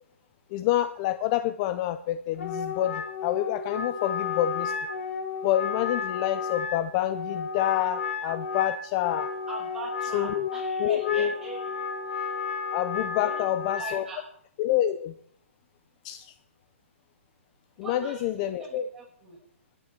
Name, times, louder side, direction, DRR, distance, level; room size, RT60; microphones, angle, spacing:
voice 1, 0.5-4.7 5.4-9.3 10.1-10.5 10.8-11.3 12.7-14.0 14.6-15.1 16.0-16.3 17.8-18.8, left 12 dB, 30° left, 12 dB, 0.5 m, -27 dB
Wind instrument woodwind instrument, 2.3-14.0, left 5 dB, 75° left, 2.3 m, -33 dB
voice 2, 9.5-12.4 13.2-14.2 17.8-19.4, right 3 dB, 5° right, -4 dB, 5.7 m, -42 dB
20.5 x 9.9 x 4.4 m, 0.67 s
hypercardioid pair, 150°, 7 cm